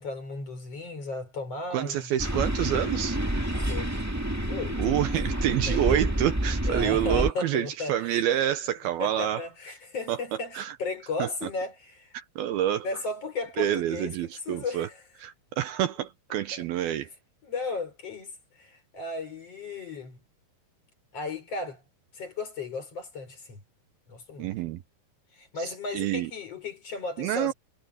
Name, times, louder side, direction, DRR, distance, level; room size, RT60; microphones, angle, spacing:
voice 1, 0.0-2.1 3.5-4.0 4.4-4.8 5.1-6.0 6.6-8.2 9.0-12.2 12.8-15.0 16.5-16.7 17.4-20.2 21.1-21.8 22.1-23.6 24.1-24.5 25.3-27.5, left 3 dB, 35° left, 5.7 m, -35 dB
voice 2, 1.7-3.2 4.8-9.4 10.1-10.8 11.2-11.3 12.1-12.9 13.6-14.9 15.2-17.1 24.4-24.8 25.6-26.3 27.2-27.5, right 11 dB, 75° right, 2.6 m, -28 dB
sound 1, 2.2-7.3, right 1 dB, 15° right, 0.6 m, -28 dB
omnidirectional pair, 4.8 m